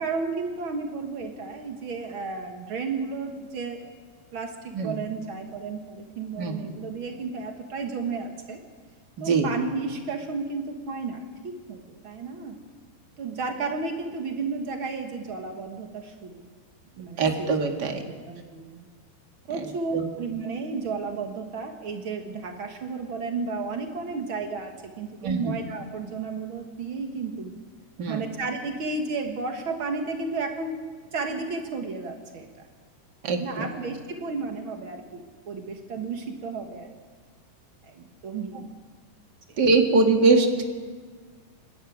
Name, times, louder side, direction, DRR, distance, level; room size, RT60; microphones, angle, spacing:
voice 1, 0.0-3.9 4.3-8.6 9.2-12.6 13.2-16.4 16.9-17.5 17.8-18.9 19.5-27.5 28.1-30.8 31.1-32.7 33.4-36.9 37.8-38.7 39.5-39.6, right 4 dB, 85° right, 4 dB, 1.1 m, -33 dB
voice 2, 6.4-6.7 9.2-9.5 17.2-18.0 19.6-19.7 19.9-20.0 25.2-25.6 28.0-28.2 33.2-33.7 39.6-40.6, right 3 dB, 45° right, 3 dB, 1.3 m, -22 dB
29.0 x 12.5 x 9.4 m, 1.5 s
omnidirectional pair, 4.8 m